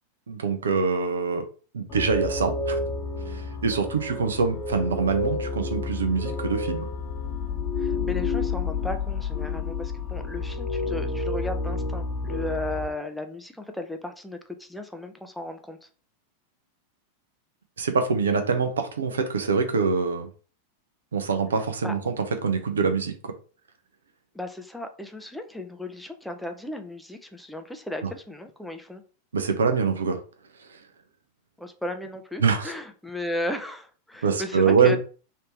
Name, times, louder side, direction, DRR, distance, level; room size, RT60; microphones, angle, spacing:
voice 1, 0.3-1.4 1.7-2.8 3.3-6.9 17.8-20.3 21.1-23.3 28.0-28.1 29.3-30.2 30.6-30.8 32.4-32.7 34.2-35.0, right 5 dB, 70° right, 7 dB, 0.6 m, -24 dB
sound 1, 1.9-12.9, left 3 dB, 40° left, 1.0 m, -30 dB
voice 2, 7.8-15.9 21.8-21.9 24.3-29.0 31.6-35.0, left 1 dB, ahead, 6 dB, 0.5 m, -35 dB
3.2 x 2.8 x 3.1 m, 0.38 s
figure-of-eight pair, 90°, 0 cm